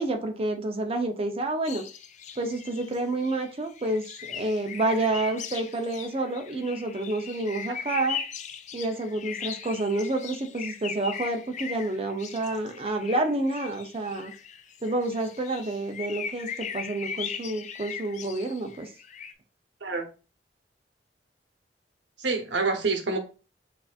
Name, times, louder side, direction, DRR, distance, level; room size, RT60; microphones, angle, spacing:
voice 1, 0.0-1.8 2.4-8.2 8.7-14.3 14.8-18.9, right 2 dB, 35° right, 5 dB, 0.7 m, -29 dB
sound 1, 1.6-19.3, left 7 dB, 40° left, 0.4 m, -39 dB
voice 2, 22.2-23.2, right 3 dB, 85° right, 5 dB, 0.9 m, -27 dB
6.6 x 2.6 x 2.4 m, 0.34 s
head